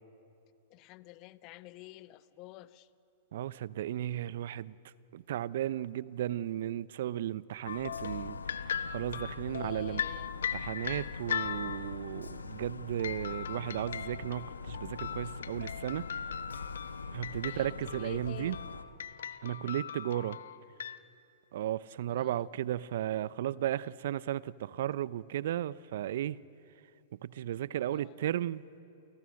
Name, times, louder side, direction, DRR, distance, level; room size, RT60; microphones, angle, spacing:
voice 1, 0.7-2.9 9.5-10.3 17.4-18.6 22.1-22.5 27.9-28.2, left 18 dB, 40° left, 14 dB, 1.0 m, -50 dB
voice 2, 3.3-4.7 5.1-8.4 8.7-10.0 10.5-16.0 17.1-18.6 19.4-20.4 21.5-26.4 27.2-28.6, right 12 dB, 60° right, 18 dB, 0.7 m, -35 dB
sound 1, 7.7-18.8, left 4 dB, 90° left, 1.3 m, -43 dB
sound 2, 7.7-12.1 13.0-21.0, left 8 dB, 70° left, 1.0 m, -39 dB
29.5 x 28.0 x 6.5 m, 2.6 s
hypercardioid pair, 110°, 0 cm